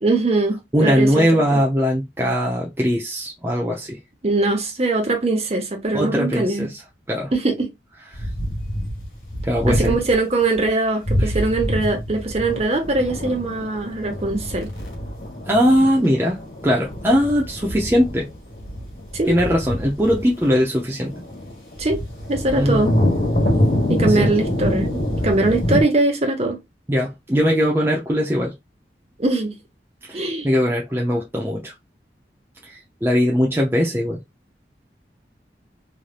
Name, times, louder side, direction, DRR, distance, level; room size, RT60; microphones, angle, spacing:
voice 1, 0.0-1.3 1.5-1.6 4.2-6.7 7.3-7.7 9.7-14.7 19.1-19.4 21.8-22.0 22.3-23.0 23.9-26.6 29.2-29.5 30.1-30.5, right 2 dB, 35° right, 1.0 m, -21 dB
voice 2, 0.7-4.0 5.9-6.7 7.1-7.3 9.4-10.0 11.2-11.4 15.5-18.3 19.3-21.1 22.5-22.8 24.0-24.3 26.9-28.5 30.1-31.7 32.6-34.2, equal, 15° right, 0.5 m, -20 dB
sound 1, 8.1-10.2 10.5-10.7 11.0-25.8, left 1 dB, 50° left, 1.5 m, -25 dB
3.2 x 2.6 x 2.4 m
head